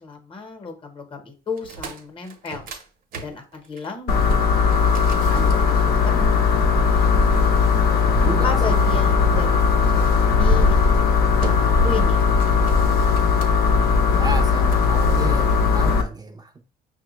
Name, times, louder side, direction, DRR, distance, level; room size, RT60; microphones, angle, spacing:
voice 1, 0.0-2.7 3.2-4.2 5.1-6.3 8.2-12.6, left 4 dB, 30° left, 0.9 m, -34 dB
sound 1, 1.5-6.2 7.0-8.3 10.0-10.3 10.8-11.1 11.4-12.0 12.2-13.8 14.4-14.9, right 3 dB, 55° right, 0.8 m, -39 dB
sound 2, 4.1-16.0, left 5 dB, 65° left, 0.7 m, -18 dB
voice 2, 7.9-8.8 14.1-16.6, right 2 dB, 25° right, 0.5 m, -32 dB
5.4 x 2.1 x 3.0 m
cardioid pair, 110°, 17 cm